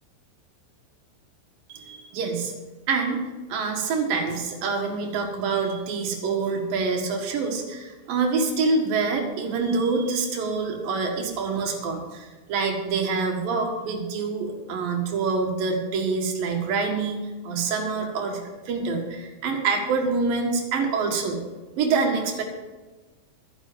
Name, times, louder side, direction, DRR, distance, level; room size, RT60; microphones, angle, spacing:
voice 1, 1.7-2.5 2.9-3.2 3.5-21.4 21.8-22.4, right 4 dB, 60° right, 2 dB, 3.0 m, -26 dB
12.5 x 10.5 x 5.2 m, 1.2 s
omnidirectional pair, 5.1 m